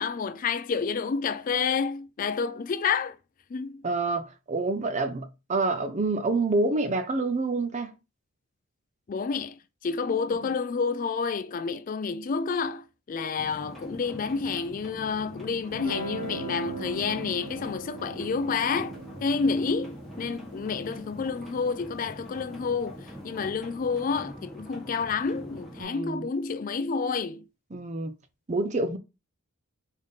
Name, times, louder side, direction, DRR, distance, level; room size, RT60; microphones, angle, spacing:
voice 1, 0.0-3.2 3.5-3.8 9.1-27.4, left 5 dB, 40° left, 0.3 m, -29 dB
voice 2, 3.8-7.9 25.8-26.3 27.7-28.1 28.5-29.0, right 3 dB, 35° right, 0.5 m, -27 dB
sound 1, 13.4-25.8, equal, ahead, 1.2 m, -44 dB
Guitar, 15.7-22.8, right 3 dB, 90° right, 2.1 m, -41 dB
4.0 x 3.5 x 3.7 m
head